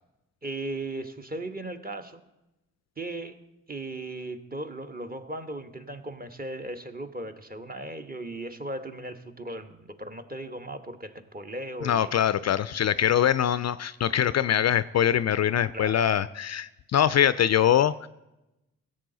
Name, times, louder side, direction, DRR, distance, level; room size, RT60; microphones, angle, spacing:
voice 1, 0.4-2.2 3.0-3.4 3.7-12.2 15.7-16.0, right 2 dB, 25° right, 6 dB, 1.2 m, -37 dB
voice 2, 11.8-18.1, left 10 dB, 45° left, 16 dB, 0.4 m, -23 dB
16.5 x 7.6 x 3.9 m, 0.96 s
supercardioid pair, 45°, 37 cm